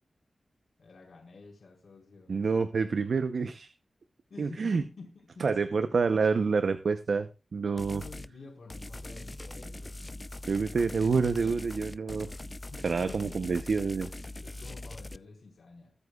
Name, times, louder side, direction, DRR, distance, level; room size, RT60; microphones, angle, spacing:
voice 1, 0.8-2.3 4.3-5.5 5.9-6.2 7.8-10.2 12.7-13.8 14.4-15.9, left 4 dB, 75° left, 0 dB, 4.5 m, -49 dB
voice 2, 2.3-3.7 4.4-4.8 5.4-8.0 10.5-12.3 12.8-14.1, right 5 dB, 75° right, 10 dB, 0.7 m, -28 dB
sound 1, 7.8-8.3 8.7-15.2, left 1 dB, 30° left, 0.5 m, -42 dB
23.0 x 8.1 x 2.4 m, 0.29 s
wide cardioid pair, 70°, 0 cm